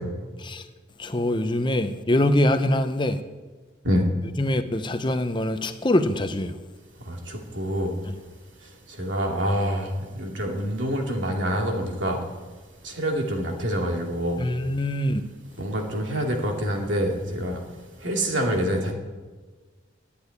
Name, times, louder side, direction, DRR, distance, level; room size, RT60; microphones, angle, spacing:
voice 1, 1.0-3.2 4.4-6.5 14.4-15.2, left 1 dB, 25° left, 0.7 m, -23 dB
voice 2, 7.1-7.9 9.0-9.9 10.2-12.2 12.8-14.5 15.6-17.6 18.0-18.9, equal, 75° right, 2.6 m, -26 dB
12.0 x 8.7 x 9.6 m
head